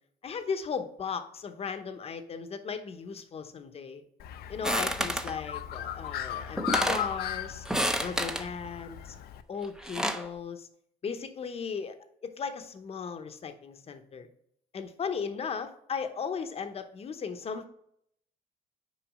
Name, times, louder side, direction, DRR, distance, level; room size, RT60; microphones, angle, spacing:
voice 1, 0.2-4.0 4.5-7.6 8.0-9.2 9.5-10.7 11.0-11.9 12.2-14.3 14.7-17.7, left 6 dB, 35° left, 8 dB, 0.8 m, -36 dB
Bird, 4.2-9.4, left 10 dB, 70° left, 0.5 m, -37 dB
sound 1, 4.6-5.3 6.2-6.3 6.6-7.1 7.6-8.5 9.6-10.3, equal, 5° right, 0.6 m, -29 dB
6.2 x 4.7 x 4.8 m, 0.71 s
cardioid pair, 110°, 17 cm